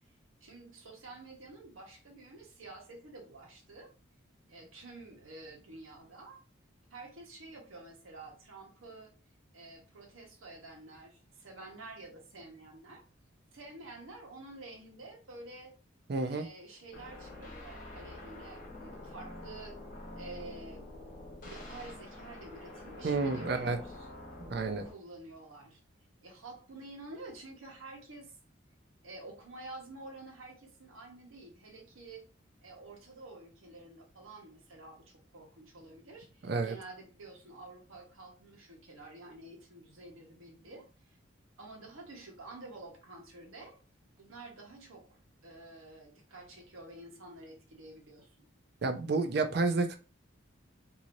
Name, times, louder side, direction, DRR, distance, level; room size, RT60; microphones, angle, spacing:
voice 1, 0.4-3.9 4.5-6.4 6.9-9.1 9.5-13.0 13.5-15.7 16.2-19.8 20.2-20.9 21.4-24.1 24.8-25.8 26.2-28.4 29.0-32.2 32.6-41.2 41.6-43.8 44.2-48.5, right 2 dB, 85° right, 1 dB, 1.0 m, -49 dB
voice 2, 16.1-16.5 23.0-23.8 24.5-24.9 36.4-36.7 48.8-50.0, right 3 dB, 50° right, 8 dB, 0.4 m, -30 dB
sound 1, 16.9-24.9, left 1 dB, 40° left, 1.0 m, -47 dB
3.0 x 2.6 x 2.6 m, 0.35 s
head